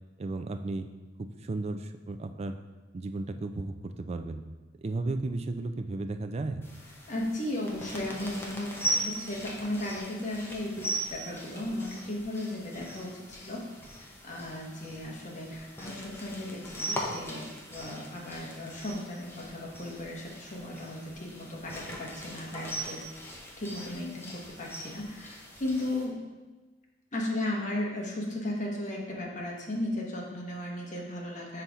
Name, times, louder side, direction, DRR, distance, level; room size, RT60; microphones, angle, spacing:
voice 1, 0.2-0.9 1.2-2.6 2.9-4.4 4.8-6.6, right 2 dB, 35° right, 7 dB, 0.4 m, -34 dB
sound 1, 6.6-26.0, right 1 dB, 10° left, 0.9 m, -40 dB
voice 2, 7.1-23.0 23.6-26.2 27.1-31.6, left 1 dB, 40° left, -2 dB, 1.2 m, -36 dB
5.7 x 4.0 x 4.7 m, 1.2 s
head